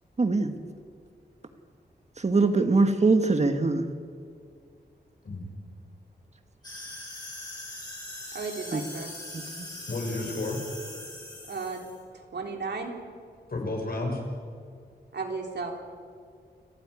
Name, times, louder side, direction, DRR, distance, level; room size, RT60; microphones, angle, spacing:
voice 1, 0.2-0.5 2.2-3.8 8.7-8.8, right 3 dB, 40° right, 7 dB, 1.6 m, -22 dB
sound 1, 6.6-12.0, left 1 dB, 25° left, 6.3 m, -41 dB
voice 2, 8.3-9.1 11.2-11.8 12.1-12.9 15.1-15.7, right 4 dB, 75° right, 2 dB, 3.6 m, -34 dB
voice 3, 9.9-10.6 13.5-14.2, left 2 dB, 55° left, 1 dB, 6.4 m, -31 dB
29.5 x 14.5 x 9.9 m, 2.2 s
wide cardioid pair, 135°, 18 cm